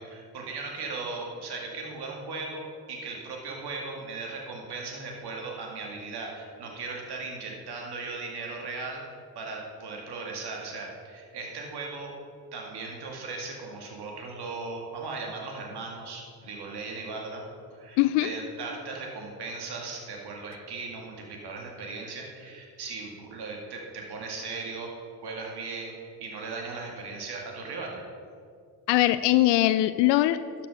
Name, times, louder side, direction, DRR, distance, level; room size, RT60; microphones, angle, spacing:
voice 1, 0.0-12.1 12.5-24.9 25.2-28.0, right 3 dB, 60° right, 0 dB, 2.2 m, -37 dB
voice 2, 18.0-18.3 28.9-30.7, left 15 dB, 65° left, 13 dB, 0.5 m, -22 dB
12.0 x 7.1 x 5.1 m, 2.3 s
hypercardioid pair, 40°, 45 cm